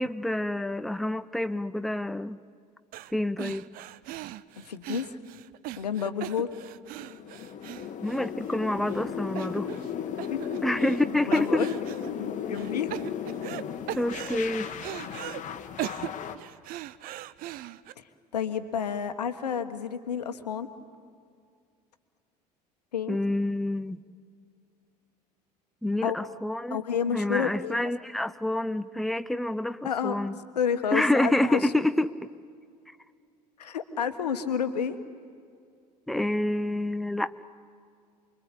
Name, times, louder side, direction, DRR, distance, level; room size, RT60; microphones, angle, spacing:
voice 1, 0.0-2.4 3.1-3.7 8.0-9.7 10.6-11.7 14.0-14.7 23.1-24.0 25.8-26.8 27.1-30.3 30.9-32.3 36.1-37.4, left 1 dB, ahead, 13 dB, 0.7 m, -28 dB
sound 1, 2.9-3.1 3.4-8.6 8.9-9.0 9.4-9.9 10.2-11.0 11.3-12.1 12.5-13.6 13.9-15.4 15.8-17.9, right 15 dB, 45° right, 0.7 m, -39 dB
voice 2, 4.6-5.2 5.8-6.5 10.3-10.4 11.3-11.8 12.1-13.0 18.0-18.1 18.3-20.7 22.9-23.2 26.0-26.2 26.7-27.8 29.8-31.6 33.6-35.0, left 7 dB, 75° left, 9 dB, 1.4 m, -30 dB
sound 2, 7.0-16.4, left 8 dB, 35° left, 1.6 m, -35 dB
28.5 x 22.0 x 8.4 m, 2.3 s
figure-of-eight pair, 65°, 21 cm